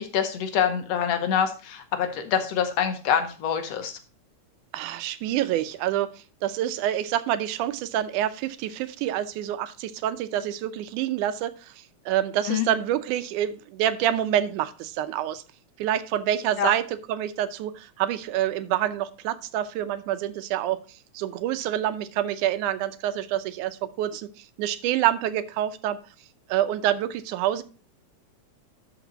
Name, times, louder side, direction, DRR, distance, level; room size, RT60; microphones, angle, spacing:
voice 1, 0.0-4.0 12.5-12.7 16.6-16.7, left 8 dB, 65° left, 7 dB, 1.9 m, -25 dB
voice 2, 4.7-6.1 6.4-15.4 15.8-26.0 26.5-27.6, right 11 dB, 90° right, 12 dB, 2.2 m, -27 dB
12.0 x 5.0 x 4.0 m, 0.36 s
omnidirectional pair, 3.4 m